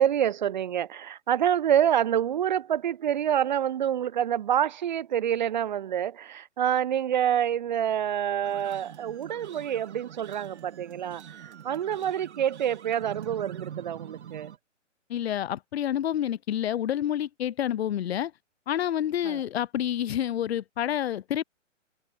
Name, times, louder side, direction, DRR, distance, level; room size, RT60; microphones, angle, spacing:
voice 1, 0.0-14.5 19.2-19.4, right 10 dB, 40° right, 0.4 m, -27 dB
sound 1, 8.4-14.6, right 9 dB, 60° right, 2.0 m, -44 dB
voice 2, 15.1-18.3 18.7-21.4, left 11 dB, 55° left, 1.0 m, -28 dB
hypercardioid pair, 140°, 38 cm